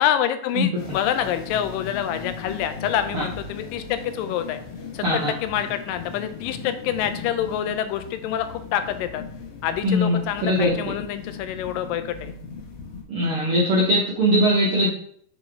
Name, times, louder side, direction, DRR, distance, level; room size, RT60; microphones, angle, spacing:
voice 1, 0.0-4.6 4.9-9.2 9.6-12.3, left 10 dB, 85° left, 10 dB, 2.2 m, -26 dB
voice 2, 0.5-1.0 3.1-3.2 5.0-5.3 9.8-10.2 10.4-10.7 13.1-14.9, equal, 75° right, -4 dB, 1.3 m, -21 dB
sound 1, 0.8-13.0, left 5 dB, 65° left, 1.5 m, -38 dB
7.0 x 4.0 x 3.3 m, 0.64 s
omnidirectional pair, 4.0 m